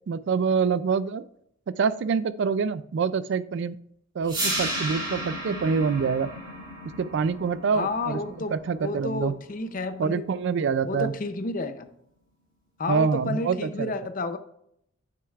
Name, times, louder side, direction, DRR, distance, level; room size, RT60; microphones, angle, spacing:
voice 1, 0.1-1.2 1.8-3.8 4.2-6.3 7.0-8.2 8.5-9.3 10.0-11.1 12.9-13.9, right 5 dB, 55° right, 16 dB, 0.3 m, -26 dB
sound 1, 4.3-10.3, right 1 dB, 25° right, 2.9 m, -34 dB
voice 2, 7.7-8.5 8.8-10.3 10.8-11.9 12.8-14.4, left 3 dB, 40° left, 10 dB, 0.6 m, -31 dB
9.6 x 7.6 x 2.4 m, 0.72 s
head